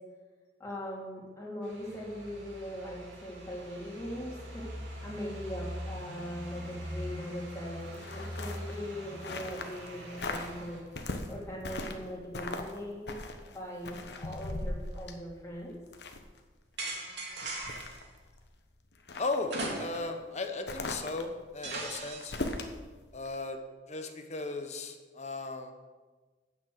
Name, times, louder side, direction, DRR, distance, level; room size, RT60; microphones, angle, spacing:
voice 1, 0.6-13.1 13.5-15.8, equal, 15° left, -4 dB, 3.1 m, -40 dB
sound 1, 1.6-10.8, equal, 90° right, 3.0 m, -43 dB
sound 2, 7.9-9.9 10.1-10.5 10.9-12.1 12.3-12.8 13.1-16.4 16.8-16.9 17.3-18.5 18.9-19.4 20.7-22.8 23.2-23.3, left 2 dB, 60° left, 1.1 m, -39 dB
sound 3, 16.8-18.0 19.5-20.2 20.6-20.7 21.6-22.5, right 2 dB, 65° right, 2.5 m, -38 dB
voice 2, 19.2-22.3 23.1-23.6 23.9-25.7, left 3 dB, 40° left, 6 dB, 1.0 m, -36 dB
9.5 x 7.3 x 7.8 m, 1.3 s
head